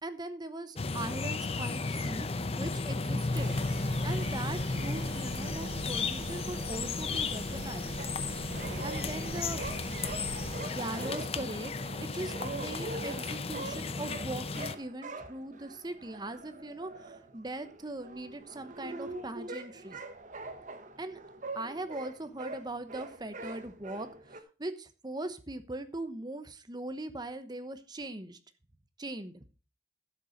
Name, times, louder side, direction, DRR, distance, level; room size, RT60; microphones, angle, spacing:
voice 1, 0.0-3.6 4.0-8.0 8.8-9.6 10.6-11.7 12.0-20.0 21.0-21.2 21.5-28.4 29.0-29.4, right 2 dB, 25° right, 10 dB, 1.0 m, -40 dB
sound 1, 0.8-14.7, left 3 dB, 35° left, 0.7 m, -34 dB
sound 2, 3.3-10.5, right 5 dB, 70° right, 0.5 m, -44 dB
sound 3, 8.0-24.4, right 2 dB, 45° right, 1.2 m, -44 dB
12.0 x 6.9 x 5.0 m, 0.34 s
head